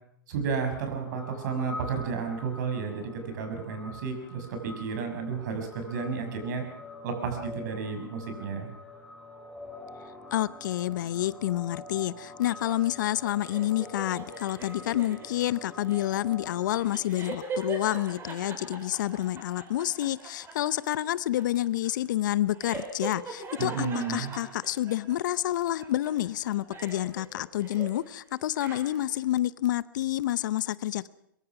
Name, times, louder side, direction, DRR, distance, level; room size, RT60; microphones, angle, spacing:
voice 1, 0.3-6.6 7.0-8.7 23.6-24.3, right 5 dB, 55° right, 6 dB, 6.0 m, -32 dB
sound 1, 1.0-16.8, left 2 dB, 5° left, 6.5 m, -46 dB
voice 2, 10.3-31.1, left 13 dB, 60° left, 18 dB, 0.8 m, -29 dB
sound 2, 12.5-25.4 25.8-28.1 28.4-29.2, right 3 dB, 20° right, 5.1 m, -42 dB
22.5 x 22.5 x 6.0 m, 0.73 s
hypercardioid pair, 115°, 12 cm